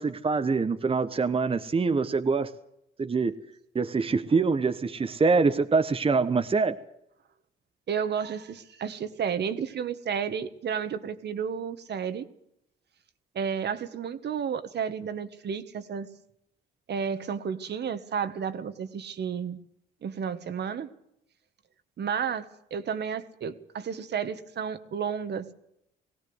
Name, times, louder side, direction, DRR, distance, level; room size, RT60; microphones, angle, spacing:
voice 1, 0.0-2.5 3.0-3.4 3.7-6.8, right 4 dB, 30° right, 8 dB, 1.1 m, -25 dB
voice 2, 7.9-12.2 13.3-16.1 16.9-19.6 20.0-20.9 22.0-25.5, right 7 dB, 60° right, 10 dB, 1.6 m, -32 dB
19.5 x 17.0 x 8.0 m, 0.78 s
cardioid pair, 90°, 20 cm